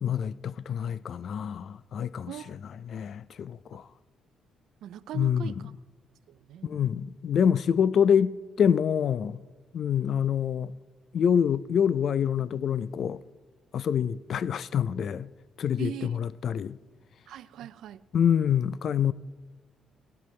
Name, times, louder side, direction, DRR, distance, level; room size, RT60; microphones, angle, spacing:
voice 1, 0.0-2.6 2.8-3.8 5.1-5.5 6.6-9.4 9.7-10.7 11.1-13.2 13.7-15.3 15.6-16.8 18.1-19.1, left 8 dB, 60° left, 0.4 m, -26 dB
voice 2, 2.3-2.6 4.8-5.7 6.3-6.8 15.8-16.1 17.3-18.0, right 12 dB, 80° right, 0.5 m, -40 dB
22.5 x 10.5 x 3.2 m
cardioid pair, 90°, 0 cm